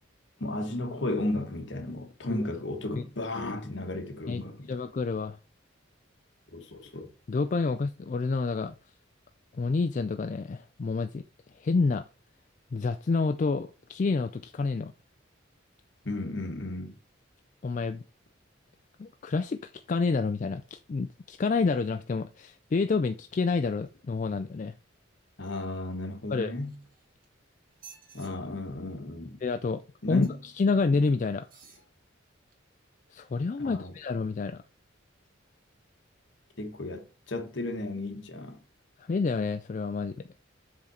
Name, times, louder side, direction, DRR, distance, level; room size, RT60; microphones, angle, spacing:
voice 1, 0.4-4.7 6.5-7.1 16.0-16.9 25.4-26.7 28.1-29.4 30.0-30.3 33.6-33.9 36.6-38.6, left 2 dB, 60° left, 1.3 m, -34 dB
voice 2, 4.3-5.4 7.3-8.7 9.5-11.2 11.5-12.0 12.7-14.9 17.6-18.0 19.0-24.7 26.3-26.5 29.4-29.8 30.1-31.5 33.1-34.6 39.0-40.1, left 4 dB, 40° left, 0.3 m, -28 dB
sound 1, 26.6-27.3 27.7-28.3 30.2-30.6 31.4-31.9 32.5-32.6, right 6 dB, 45° right, 1.4 m, -53 dB
7.4 x 3.8 x 4.1 m
head